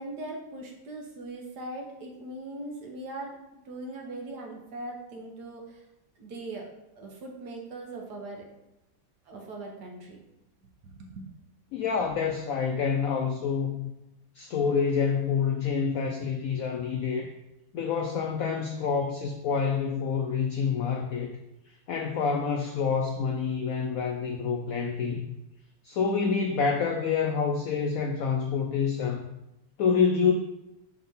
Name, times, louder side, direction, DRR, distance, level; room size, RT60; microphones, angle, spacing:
voice 1, 0.0-3.4 3.6-5.8 6.2-6.7 7.0-8.5 9.3-10.2 10.9-11.3, right 2 dB, 60° right, 1 dB, 1.5 m, -40 dB
voice 2, 11.7-13.9 14.3-17.3 17.7-21.4 21.9-25.3 25.8-29.3 29.8-30.3, left 6 dB, 85° left, 3 dB, 0.7 m, -27 dB
4.6 x 3.9 x 5.4 m, 0.91 s
omnidirectional pair, 2.1 m